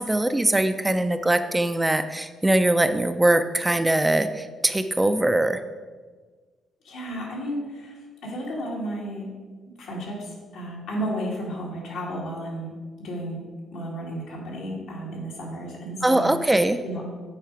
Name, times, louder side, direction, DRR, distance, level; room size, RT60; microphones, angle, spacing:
voice 1, 0.0-5.6 16.0-16.8, right 1 dB, 10° right, 9 dB, 0.4 m, -22 dB
voice 2, 6.8-9.3 9.8-12.7 13.0-13.4 13.7-16.3 16.8-17.0, equal, 80° left, -3 dB, 2.5 m, -33 dB
8.1 x 4.9 x 4.7 m, 1.4 s
cardioid pair, 90°, 0 cm